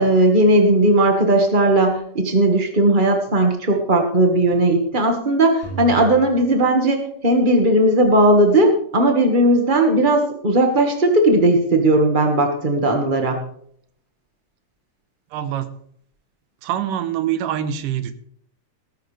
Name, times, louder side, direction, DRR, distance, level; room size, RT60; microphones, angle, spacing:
voice 1, 0.0-13.4, right 1 dB, 40° right, 3 dB, 0.6 m, -17 dB
sound 1, 5.6-7.8, right 6 dB, 55° left, 6.9 m, -36 dB
voice 2, 15.3-15.7 16.6-18.1, right 10 dB, 85° right, 10 dB, 2.7 m, -24 dB
19.5 x 11.5 x 3.3 m, 0.64 s
omnidirectional pair, 3.8 m